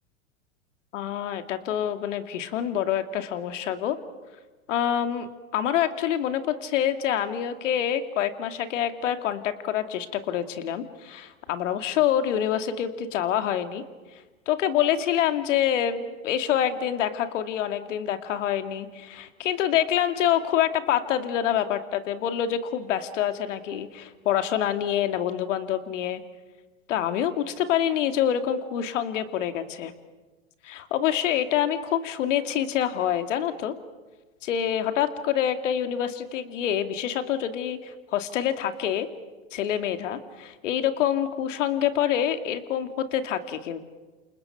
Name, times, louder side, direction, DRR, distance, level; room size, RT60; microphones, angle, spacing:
voice 1, 0.9-4.0 4.7-13.8 14.5-26.2 26.9-29.9 30.6-33.7 34.4-39.1 39.5-43.8, left 10 dB, 65° left, 8 dB, 2.3 m, -26 dB
28.5 x 28.0 x 5.8 m, 1.3 s
hypercardioid pair, 105°, 40 cm